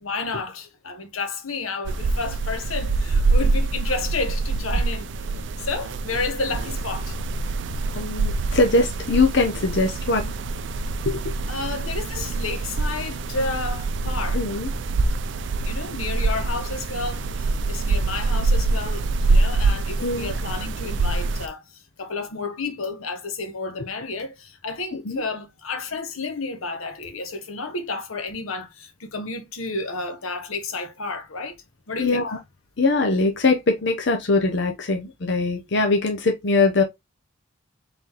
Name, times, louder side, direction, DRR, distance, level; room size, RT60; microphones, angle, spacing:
voice 1, 0.0-5.1 5.6-7.2 11.5-14.4 15.6-21.6 22.0-31.6 31.9-32.2, left 3 dB, 85° left, 1.1 m, -31 dB
sound 1, 1.9-21.5, right 3 dB, 60° right, 0.4 m, -25 dB
voice 2, 8.0-10.3 11.1-11.3 14.3-14.7 20.0-20.3 24.9-25.2 32.0-32.4 32.8-36.8, left 3 dB, 55° left, 0.6 m, -22 dB
3.9 x 3.8 x 2.9 m
head